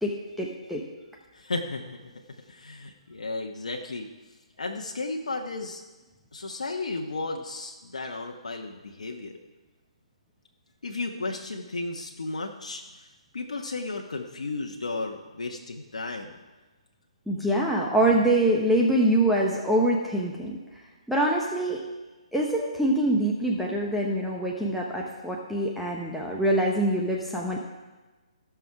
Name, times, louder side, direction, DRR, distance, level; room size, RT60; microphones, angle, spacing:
voice 1, 0.0-0.8 17.3-20.6 21.1-21.8 22.3-27.6, right 1 dB, ahead, -4 dB, 1.0 m, -24 dB
voice 2, 1.3-2.1 2.5-4.1 4.6-5.8 6.3-9.4 10.8-13.1 13.3-16.4, left 3 dB, 80° left, 1 dB, 1.1 m, -34 dB
16.0 x 6.1 x 4.8 m, 1.2 s
hypercardioid pair, 145°, 4 cm